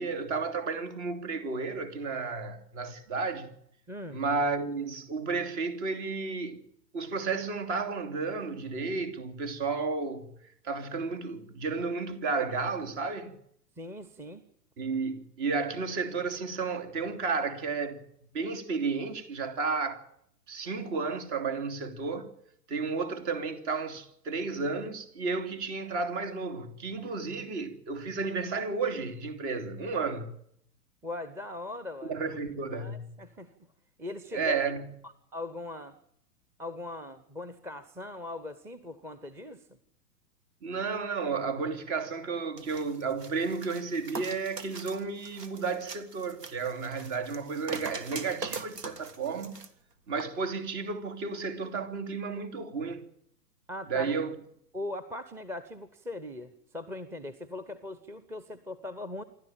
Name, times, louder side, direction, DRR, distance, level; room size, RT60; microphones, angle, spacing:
voice 1, 0.0-3.5 4.1-6.6 6.9-10.3 10.6-13.3 14.8-18.0 18.3-20.0 20.5-22.3 22.7-30.3 32.0-33.2 34.3-34.8 40.6-49.6 50.1-53.0 53.9-54.3, right 4 dB, 45° right, 3.1 m, -32 dB
voice 2, 3.9-4.2 13.8-14.4 31.0-32.2 32.7-33.5 34.0-34.6 35.0-36.0 36.6-39.8 53.7-54.1 54.7-59.2, left 2 dB, 5° right, 0.8 m, -40 dB
sound 1, 42.6-49.7 50.1-50.2, right 3 dB, 70° right, 2.1 m, -42 dB
27.0 x 12.5 x 8.9 m
figure-of-eight pair, 105°, 49 cm